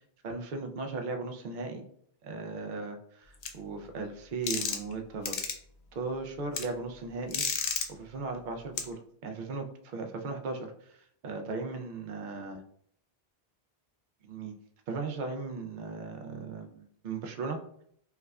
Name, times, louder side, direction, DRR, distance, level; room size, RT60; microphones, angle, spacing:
voice 1, 0.2-1.8 2.2-5.4 5.9-7.4 7.9-11.0 11.2-12.6 14.2-14.6 14.9-17.6, right 3 dB, 60° right, 4 dB, 0.6 m, -37 dB
sound 1, 3.4-3.5 4.5-4.9 5.3-5.5 6.5-6.6 7.3-7.9 8.8-8.9, left 5 dB, 55° left, 0.5 m, -31 dB
4.6 x 2.3 x 2.2 m, 0.66 s
omnidirectional pair, 1.0 m